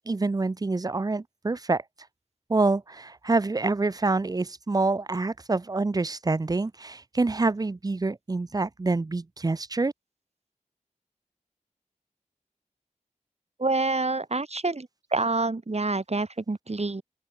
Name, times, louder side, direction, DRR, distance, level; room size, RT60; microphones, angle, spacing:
voice 1, 0.1-1.8 2.5-9.9, right 3 dB, 30° right, 0.4 m, -26 dB
voice 2, 13.6-17.0, right 3 dB, 50° right, 1.2 m, -27 dB
open air
wide cardioid pair, 50°, 13 cm